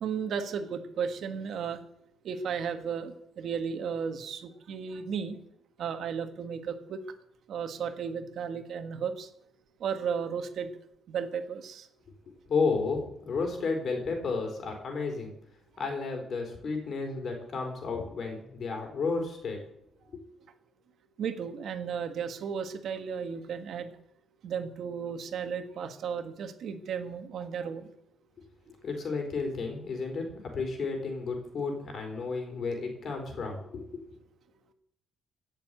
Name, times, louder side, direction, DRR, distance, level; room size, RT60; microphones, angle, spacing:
voice 1, 0.0-1.8 2.2-5.4 5.8-7.0 7.5-9.3 9.8-10.7 11.1-11.9 21.2-23.9 24.4-27.9, right 6 dB, 70° right, 7 dB, 1.6 m, -34 dB
voice 2, 12.5-15.3 15.8-19.6 20.1-20.2 28.8-34.0, left 4 dB, 50° left, 4 dB, 4.2 m, -32 dB
16.0 x 6.8 x 9.0 m, 0.74 s
cardioid pair, 130°, 0 cm